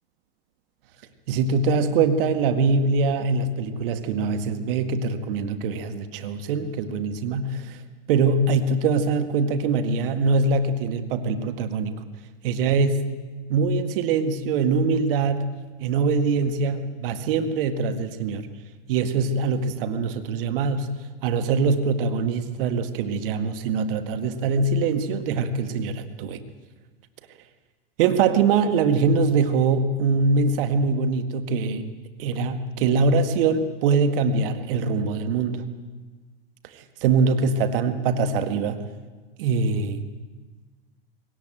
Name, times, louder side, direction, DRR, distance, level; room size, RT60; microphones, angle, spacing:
voice 1, 1.3-7.8 8.1-12.0 12.4-13.1 13.5-15.5 15.8-18.5 18.9-20.9 21.2-26.4 28.0-31.9 32.2-35.6 36.7-38.8 39.4-40.0, right 4 dB, 65° right, 9 dB, 2.0 m, -23 dB
21.0 x 18.0 x 9.1 m, 1.4 s
hypercardioid pair, 105°, 30 cm